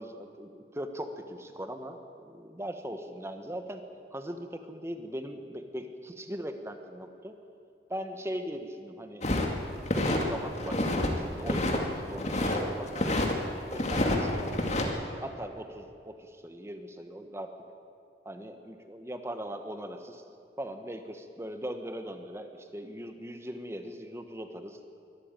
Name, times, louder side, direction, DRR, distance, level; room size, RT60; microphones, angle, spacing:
voice 1, 0.0-3.8 4.1-7.4 7.9-9.3 9.8-17.5 18.2-20.2 20.6-24.8, equal, 15° right, 7 dB, 1.2 m, -40 dB
sound 1, 9.2-10.2 10.6-11.1 11.4-12.6 12.9-13.3 13.7-14.8, left 1 dB, 40° left, 2.2 m, -28 dB
22.5 x 13.5 x 9.0 m, 2.4 s
head